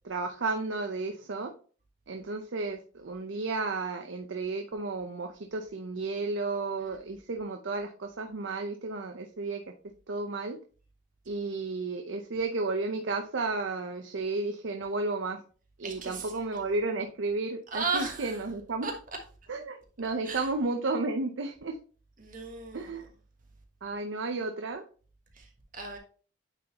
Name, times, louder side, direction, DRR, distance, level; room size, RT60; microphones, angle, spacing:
voice 1, 0.0-1.5 2.1-9.6 10.1-10.6 11.3-15.4 15.8-18.9 19.5-21.8 22.7-23.1 23.8-24.8, right 3 dB, 75° right, 0.6 m, -33 dB
voice 2, 15.8-16.6 17.7-18.4 18.8-18.9 20.2-20.5 22.2-23.0 25.3-26.0, right 4 dB, 45° right, 1.2 m, -36 dB
9.1 x 3.9 x 2.9 m
head